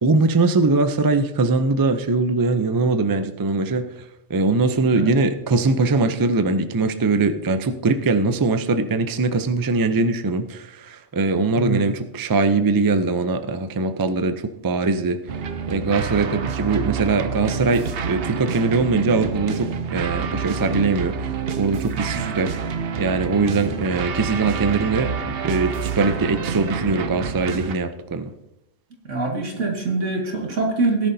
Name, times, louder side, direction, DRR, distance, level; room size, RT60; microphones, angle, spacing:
voice 1, 0.0-3.8 4.3-14.3 14.6-15.2 15.7-22.7 23.0-28.3, right 3 dB, 30° right, 9 dB, 0.4 m, -21 dB
voice 2, 4.7-5.2 11.6-11.9 21.9-22.4 29.0-31.1, right 3 dB, 75° right, 2 dB, 2.2 m, -25 dB
sound 1, 15.3-27.8, right 6 dB, 55° right, 0.9 m, -28 dB
18.0 x 10.5 x 2.7 m, 0.88 s
omnidirectional pair, 1.3 m